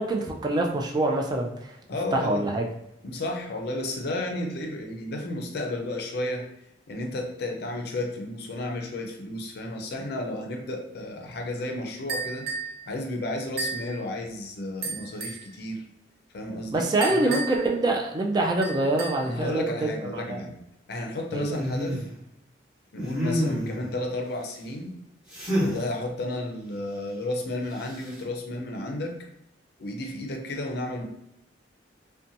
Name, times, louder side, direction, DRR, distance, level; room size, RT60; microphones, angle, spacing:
voice 1, 0.0-1.7 2.1-2.6 16.7-20.4 21.3-21.6, right 2 dB, 25° right, 1 dB, 0.3 m, -25 dB
voice 2, 1.9-2.5 3.0-6.5 6.9-12.5 12.9-15.8 16.3-17.4 19.2-20.5 20.9-22.1 22.9-24.9 25.6-29.3 29.8-31.0, left 1 dB, 60° left, 3 dB, 0.5 m, -32 dB
sound 1, 12.1-12.8 13.6-13.9 14.8-15.5 17.0-17.7 18.6-19.3, right 4 dB, 55° right, 0.7 m, -33 dB
sound 2, 21.5-22.1 22.9-23.9 25.3-25.8 27.8-28.2, equal, 5° right, 1.0 m, -28 dB
2.6 x 2.2 x 2.7 m, 0.81 s
head